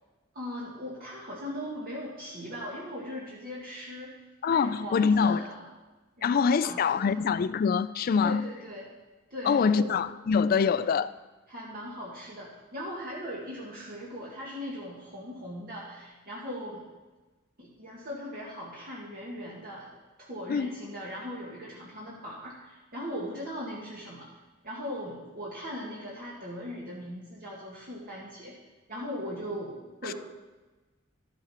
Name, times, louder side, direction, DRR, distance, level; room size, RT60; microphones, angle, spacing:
voice 1, 0.3-5.6 6.2-7.1 8.2-8.8 9.3-9.9 10.5-10.9 11.5-16.8 17.6-19.9 20.2-24.3 24.6-28.6 28.9-30.1, equal, 45° right, 1.8 m, -39 dB
voice 2, 4.4-5.4 6.2-8.4 9.4-11.1 20.5-20.7 30.1-30.2, left 6 dB, 45° left, 0.3 m, -24 dB
13.0 x 7.3 x 4.3 m
head